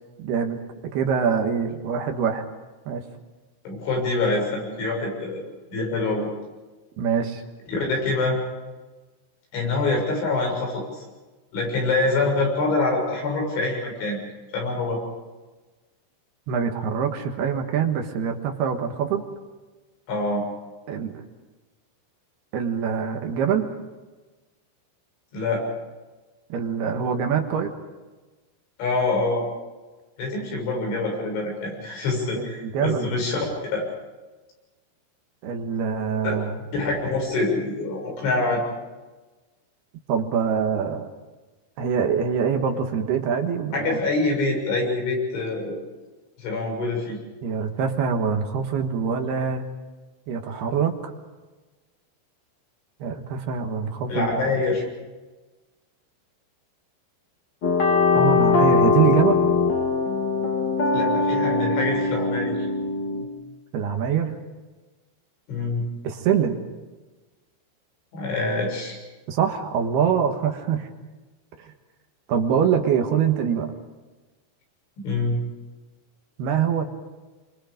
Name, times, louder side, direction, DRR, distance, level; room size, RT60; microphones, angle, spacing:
voice 1, 0.2-0.6 0.9-2.4 2.9-3.0 7.0-7.4 16.5-19.2 20.9-21.1 22.5-23.7 26.5-27.7 32.4-33.2 35.4-36.6 40.1-41.1 41.8-44.0 47.4-49.6 50.3-51.1 53.0-54.5 58.1-59.4 63.7-64.4 66.0-66.6 69.3-70.9 71.6-71.7 72.3-73.7 76.4-76.8, right 7 dB, 65° right, 4 dB, 3.2 m, -24 dB
voice 2, 3.7-5.4 5.7-6.3 7.7-8.4 9.5-11.0 11.5-14.2 14.5-15.0 20.1-20.4 25.3-25.6 28.8-29.5 30.2-33.4 33.7-33.9 36.3-36.4 36.7-38.6 43.7-45.8 46.4-47.2 54.1-54.8 60.9-62.6 65.5-65.8 68.1-69.0 75.0-75.4, left 3 dB, 85° left, 0 dB, 9.2 m, -25 dB
sound 1, 57.6-63.2, left 4 dB, 35° left, 1.8 m, -21 dB
28.5 x 25.0 x 5.2 m, 1.2 s
omnidirectional pair, 5.3 m